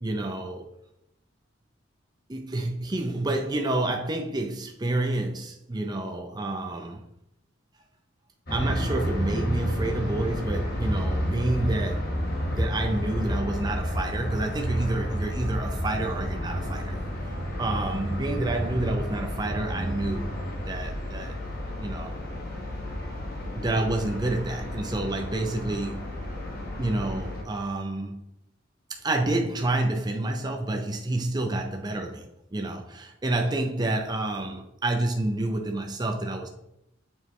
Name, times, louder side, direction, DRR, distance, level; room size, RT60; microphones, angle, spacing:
voice 1, 0.0-0.7 2.3-7.0 8.5-12.1 12.5-17.0 17.6-20.4 20.7-21.4 21.8-22.2 23.5-26.1 26.8-28.2 29.0-36.5, right 2 dB, 20° right, 0.5 m, -29 dB
sound 1, 8.5-27.4, equal, 50° left, 1.5 m, -31 dB
7.2 x 4.6 x 3.2 m
head